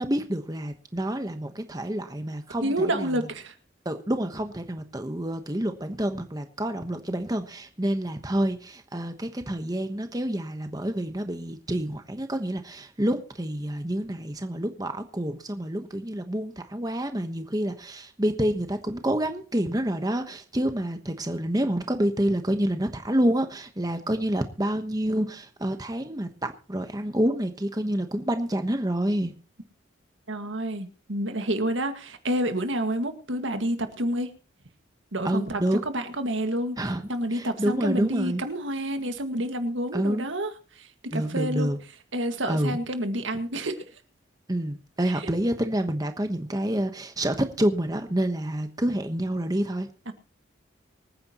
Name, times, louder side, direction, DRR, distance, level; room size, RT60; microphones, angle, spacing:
voice 1, 0.0-3.3 3.8-29.3 35.2-35.8 36.8-38.4 39.9-40.2 41.1-41.8 42.5-42.8 44.5-49.9, right 1 dB, 20° right, 7 dB, 1.1 m, -28 dB
voice 2, 2.6-3.5 30.3-34.3 35.1-36.8 37.1-41.7 42.1-43.8 45.1-45.3 50.1-50.2, right 1 dB, 75° right, 7 dB, 1.9 m, -29 dB
25.5 x 9.6 x 3.0 m, 0.36 s
head